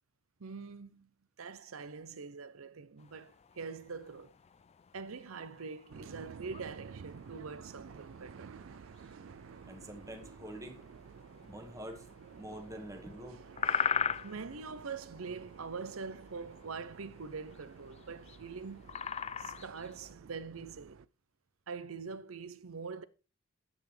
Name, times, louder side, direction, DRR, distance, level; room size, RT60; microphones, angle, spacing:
voice 1, 0.4-1.1 1.4-4.3 4.9-8.6 14.2-19.0 19.4-21.0 21.7-23.0, right 5 dB, 85° right, 0.7 m, -44 dB
sound 1, 3.0-20.1, left 8 dB, 30° left, 0.3 m, -42 dB
sound 2, 5.9-21.1, right 6 dB, 65° right, 0.4 m, -52 dB
voice 2, 9.7-10.9 11.4-13.4, right 1 dB, 15° right, 1.4 m, -46 dB
9.6 x 8.2 x 3.4 m
head